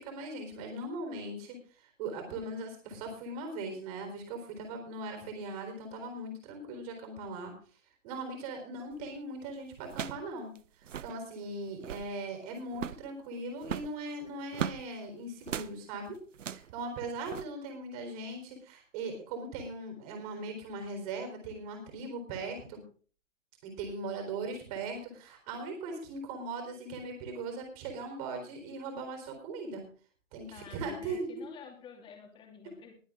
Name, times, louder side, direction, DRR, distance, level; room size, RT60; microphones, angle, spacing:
voice 1, 0.0-7.5 8.0-10.5 10.8-22.8 23.6-29.8 30.3-31.4, right 2 dB, 30° right, 4 dB, 4.2 m, -39 dB
sound 1, 8.9-9.2 9.9-10.3 10.6-10.7 10.8-11.2 11.7-12.1 12.7-13.1 13.6-14.8 15.4-15.7 16.3-16.7 17.3-17.4, right 8 dB, 70° right, 0.8 m, -37 dB
voice 2, 30.5-32.9, left 6 dB, 15° left, 2 dB, 2.8 m, -50 dB
22.0 x 8.0 x 3.8 m, 0.40 s
hypercardioid pair, 150°, 39 cm